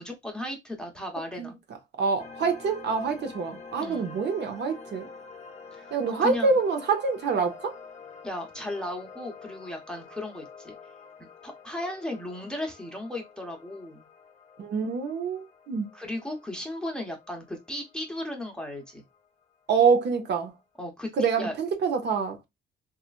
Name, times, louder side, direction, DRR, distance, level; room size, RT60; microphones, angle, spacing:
voice 1, 0.0-1.6 3.8-4.1 5.7-5.9 6.2-6.5 8.2-10.7 11.2-14.1 15.9-19.0 20.8-21.1 21.4-21.5, left 1 dB, 5° left, 0.9 m, -35 dB
voice 2, 2.0-5.1 5.9-7.8 14.6-15.9 19.7-20.5 21.1-22.4, right 5 dB, 60° right, 0.7 m, -26 dB
sound 1, 2.2-19.2, left 5 dB, 35° left, 0.7 m, -47 dB
2.9 x 2.4 x 2.4 m
cardioid pair, 90°, 20 cm